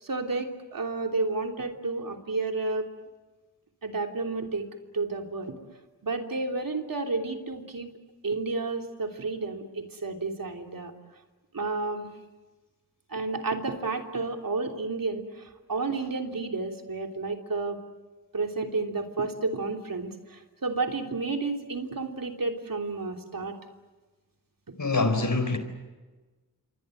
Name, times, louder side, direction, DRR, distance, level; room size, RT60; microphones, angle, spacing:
voice 1, 0.0-2.9 3.8-4.7 4.9-5.6 6.0-7.9 8.2-10.9 11.5-12.1 13.1-17.8 18.3-23.6 24.7-24.8, right 3 dB, 60° right, 3.2 m, -31 dB
voice 2, 24.8-25.6, left 3 dB, 55° left, 4.4 m, -24 dB
27.5 x 24.0 x 7.9 m
cardioid pair, 45°, 38 cm